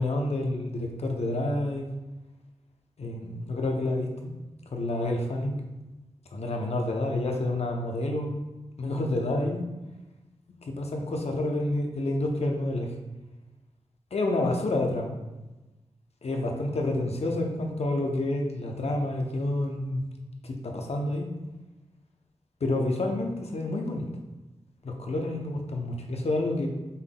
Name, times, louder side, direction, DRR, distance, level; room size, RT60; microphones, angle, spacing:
voice 1, 0.0-1.9 3.0-4.3 4.7-5.6 6.3-8.4 8.8-9.6 10.7-12.9 14.1-15.1 16.2-20.0 20.4-21.3 22.6-24.1 24.8-26.7, left 2 dB, 60° left, 2 dB, 0.7 m, -29 dB
5.5 x 3.5 x 2.3 m, 1.1 s
wide cardioid pair, 70°, 12 cm